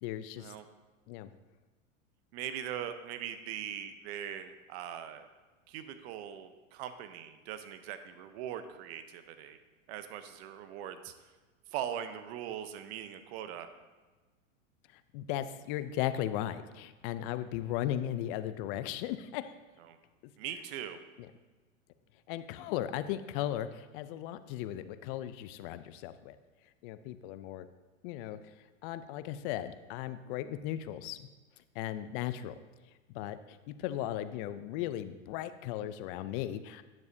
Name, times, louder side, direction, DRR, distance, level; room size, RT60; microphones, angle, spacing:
voice 1, 0.0-0.5 1.1-1.3 15.1-19.5 22.3-26.4 26.8-27.7 28.0-28.4 28.8-31.3 31.8-32.6 33.1-36.8, left 12 dB, 45° left, 12 dB, 0.5 m, -36 dB
voice 2, 2.3-5.3 5.7-9.6 9.9-11.1 11.7-13.7 19.8-20.0 20.4-21.0, right 10 dB, 55° right, 9 dB, 0.8 m, -41 dB
9.7 x 7.3 x 2.7 m, 1.3 s
hypercardioid pair, 120°, 39 cm